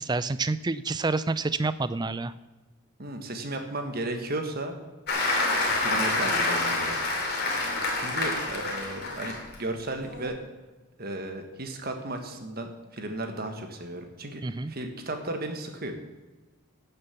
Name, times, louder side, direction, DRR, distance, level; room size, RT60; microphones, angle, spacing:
voice 1, 0.0-2.3 14.4-14.7, right 3 dB, 20° right, 15 dB, 0.4 m, -28 dB
voice 2, 3.0-4.8 5.8-7.0 7.9-10.4 11.0-15.9, right 2 dB, 45° right, 5 dB, 1.5 m, -34 dB
Applause, 5.1-9.5 10.0-10.2, left 2 dB, 50° left, 2.6 m, -27 dB
12.5 x 6.8 x 7.1 m, 1.2 s
head